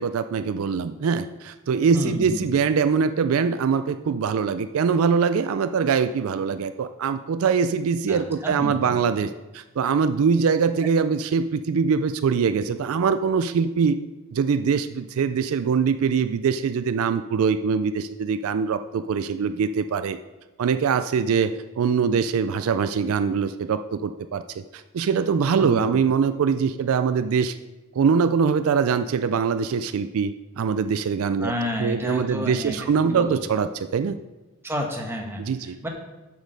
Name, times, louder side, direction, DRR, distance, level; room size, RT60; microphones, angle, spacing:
voice 1, 0.0-14.0 14.3-20.2 20.6-27.6 28.0-31.5 31.8-34.2 35.4-35.8, right 6 dB, 70° right, 11 dB, 0.4 m, -23 dB
voice 2, 1.9-2.4 8.1-9.0 25.6-25.9 31.4-33.4 34.6-35.9, equal, 10° right, 1 dB, 1.2 m, -31 dB
8.0 x 6.3 x 5.2 m, 1.2 s
head